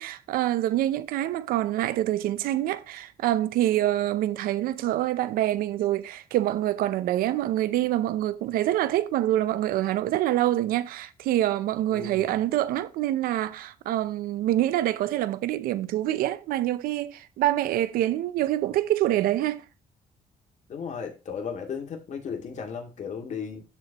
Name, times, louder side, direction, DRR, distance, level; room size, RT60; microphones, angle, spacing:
voice 1, 0.0-19.6, right 13 dB, 85° right, 0.6 m, -26 dB
voice 2, 11.9-12.3 20.7-23.6, left 6 dB, 55° left, 2.3 m, -35 dB
12.5 x 4.3 x 3.0 m
cardioid pair, 95°, 15 cm